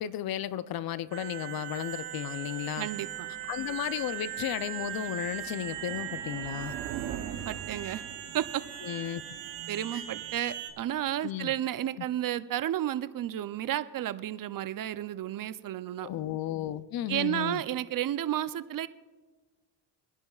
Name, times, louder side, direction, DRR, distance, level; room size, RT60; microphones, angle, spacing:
voice 1, 0.0-2.9 3.5-6.7 8.8-9.2 9.9-10.0 11.2-11.5 12.0-12.1 16.0-17.6, left 11 dB, 55° left, 16 dB, 0.6 m, -34 dB
sound 1, 1.1-10.7, right 11 dB, 90° right, 1.4 m, -39 dB
sound 2, 2.4-11.4, right 10 dB, 75° right, 1.0 m, -44 dB
voice 2, 2.8-3.3 7.5-8.0 8.3-8.6 9.7-16.1 17.1-18.9, right 12 dB, 50° right, 14 dB, 0.6 m, -32 dB
24.0 x 10.5 x 2.4 m, 1.3 s
supercardioid pair, 70°, 45 cm